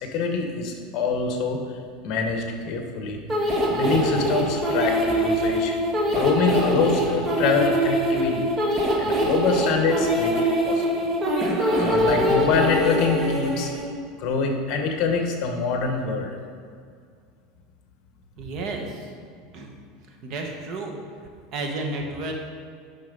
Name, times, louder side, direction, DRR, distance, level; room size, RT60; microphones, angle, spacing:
voice 1, 0.0-1.6 2.0-3.2 3.7-5.7 6.1-11.1 11.7-13.7 14.2-16.3, left 4 dB, 45° left, 4 dB, 1.3 m, -25 dB
sound 1, 3.3-13.8, equal, 20° right, 1.5 m, -23 dB
voice 2, 18.4-19.1 19.5-19.7 20.2-21.0 21.5-22.3, right 2 dB, 45° right, 2 dB, 1.4 m, -31 dB
9.9 x 6.0 x 5.4 m, 2.2 s
supercardioid pair, 150°, 0 cm